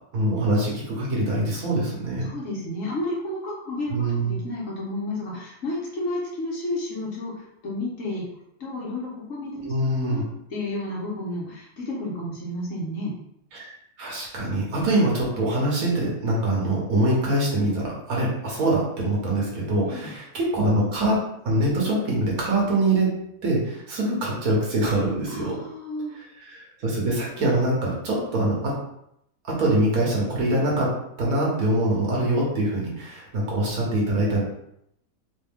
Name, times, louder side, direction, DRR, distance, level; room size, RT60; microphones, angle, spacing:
voice 1, 0.1-2.3 3.9-4.4 9.6-10.2 13.5-23.1 23.4-25.6 26.1-28.8 29.5-34.4, right 1 dB, 75° right, -3 dB, 1.6 m, -24 dB
voice 2, 2.2-8.3 8.6-9.7 10.0-10.2 10.5-13.1 19.8-20.1 25.3-26.2, left 1 dB, 65° left, -4 dB, 1.4 m, -31 dB
3.9 x 2.3 x 3.5 m, 0.77 s
omnidirectional pair, 1.5 m